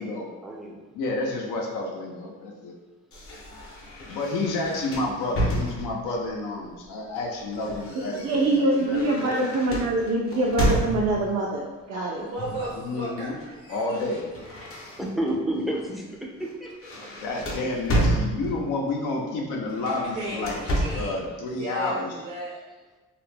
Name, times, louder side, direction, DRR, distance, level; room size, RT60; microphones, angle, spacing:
voice 1, 0.4-0.8 13.2-13.3 15.0-16.7 17.0-17.1 19.4-19.5, right 1 dB, ahead, -2 dB, 0.4 m, -30 dB
voice 2, 0.9-2.8 4.1-9.4 12.8-13.4 13.7-14.2 17.2-20.6 20.9-22.1, left 2 dB, 90° left, -1 dB, 0.6 m, -30 dB
sound 1, 3.1-6.2 7.1-11.4 12.4-12.8 13.0-15.4 15.8-16.0 16.4-18.8 19.7-21.2, right 1 dB, 50° left, 0.7 m, -30 dB
voice 3, 8.0-12.3, right 2 dB, 60° right, -4 dB, 0.5 m, -24 dB
voice 4, 12.2-14.0 19.8-21.2 21.5-22.6, right 2 dB, 80° right, -5 dB, 0.9 m, -36 dB
2.3 x 2.0 x 3.2 m, 1.2 s
cardioid pair, 90°, 30 cm